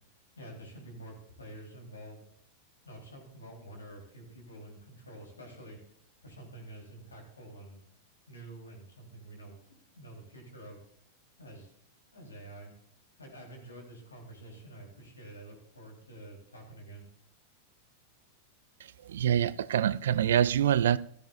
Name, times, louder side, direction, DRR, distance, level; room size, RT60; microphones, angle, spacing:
voice 1, 0.4-2.2 2.8-7.8 8.3-9.6 9.9-10.8 11.4-11.7 12.1-12.7 13.2-17.0, right 1 dB, 90° left, 3.8 m, -48 dB
voice 2, 18.8-21.0, right 10 dB, 70° right, 0.4 m, -26 dB
14.0 x 13.0 x 2.6 m
hypercardioid pair, 95°, 0 cm